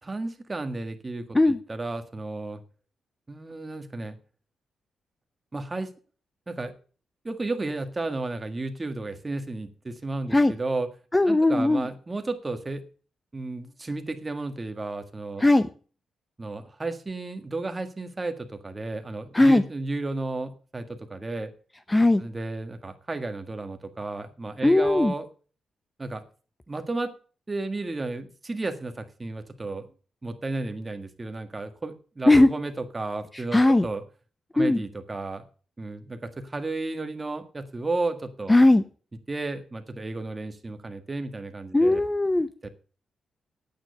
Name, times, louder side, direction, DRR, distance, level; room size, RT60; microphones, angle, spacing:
voice 1, 0.0-2.6 3.3-4.2 5.5-5.9 6.5-6.7 7.2-10.9 11.3-12.8 13.3-15.4 16.4-21.5 22.2-25.2 26.0-26.2 26.7-27.1 27.5-29.9 30.2-34.0 34.5-35.4 35.8-38.5 39.3-42.0 42.6-42.7, right 2 dB, 25° right, 8 dB, 1.7 m, -33 dB
voice 2, 11.1-11.9 15.4-15.7 19.3-19.6 21.9-22.2 24.6-25.1 32.3-32.5 33.3-33.9 34.6-34.8 38.5-38.8 41.7-42.5, left 2 dB, 15° left, 13 dB, 0.6 m, -18 dB
9.3 x 8.8 x 6.5 m, 0.39 s
cardioid pair, 110°, 0 cm